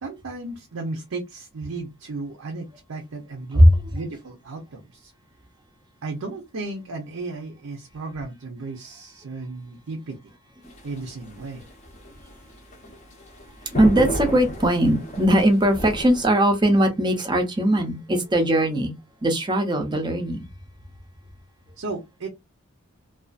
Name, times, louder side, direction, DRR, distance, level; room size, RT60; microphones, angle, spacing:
voice 1, 0.0-5.1 6.0-10.2 10.8-11.7 21.8-22.3, right 3 dB, 75° right, 0.6 m, -34 dB
voice 2, 3.5-3.9 13.7-18.9 19.2-20.4, right 1 dB, 20° right, 0.5 m, -19 dB
sound 1, 10.6-16.3, equal, 30° left, 0.5 m, -33 dB
2.5 x 2.3 x 2.3 m
head